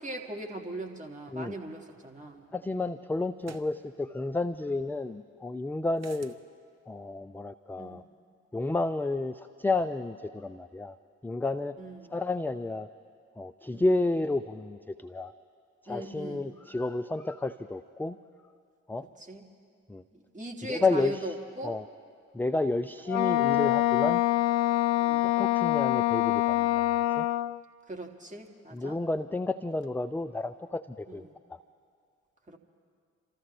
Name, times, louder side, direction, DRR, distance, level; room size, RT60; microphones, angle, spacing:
voice 1, 0.0-2.5 7.8-8.0 11.8-12.1 13.7-13.8 15.9-16.5 19.3-19.4 20.1-21.7 22.5-22.7 25.0-25.2 27.9-29.0 31.1-31.3 32.5-32.6, right 1 dB, 20° right, 1 dB, 2.6 m, -39 dB
sound 1, 2.0-2.1 3.4-3.7 6.0-6.4, right 8 dB, 45° right, 1.0 m, -49 dB
voice 2, 2.5-6.3 6.9-8.0 8.5-11.0 11.2-11.8 12.1-12.9 13.4-15.3 15.8-18.2 18.9-19.1 19.9-20.0 20.6-21.4 21.6-21.8 22.3-24.2 25.2-27.3 28.7-31.6, left 2 dB, 5° left, 12 dB, 0.4 m, -31 dB
Wind instrument woodwind instrument, 23.1-27.6, left 15 dB, 65° left, 0.5 m, -25 dB
28.0 x 14.0 x 3.5 m, 2.2 s
figure-of-eight pair, 40°, 36 cm